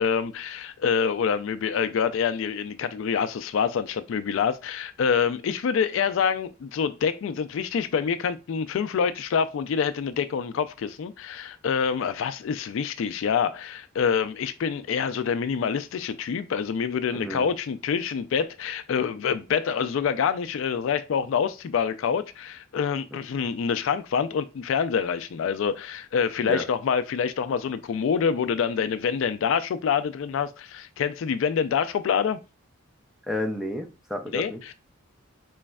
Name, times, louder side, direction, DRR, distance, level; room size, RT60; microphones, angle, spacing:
voice 1, 0.0-32.4 34.3-34.7, left 6 dB, 65° left, 0.3 m, -26 dB
voice 2, 17.1-17.5 23.4-23.5 26.4-26.7 33.3-34.6, left 1 dB, ahead, 0.5 m, -31 dB
4.1 x 3.1 x 2.3 m
head